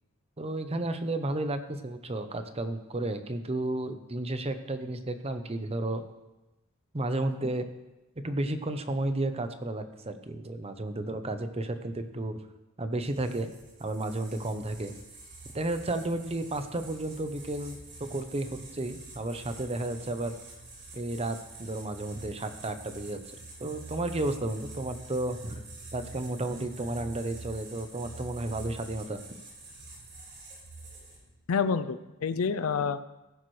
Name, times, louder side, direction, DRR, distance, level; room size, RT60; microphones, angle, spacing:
voice 1, 0.4-6.0 6.9-7.7 8.2-12.4 12.8-13.5 13.8-14.9 15.5-20.4 20.9-23.2 23.6-25.6 25.9-29.2, right 2 dB, 30° right, 9 dB, 0.8 m, -32 dB
sound 1, 13.0-31.4, right 3 dB, 55° right, 4.2 m, -47 dB
voice 2, 31.5-33.0, left 5 dB, 80° left, 13 dB, 0.5 m, -28 dB
15.5 x 10.5 x 3.3 m, 1.0 s
head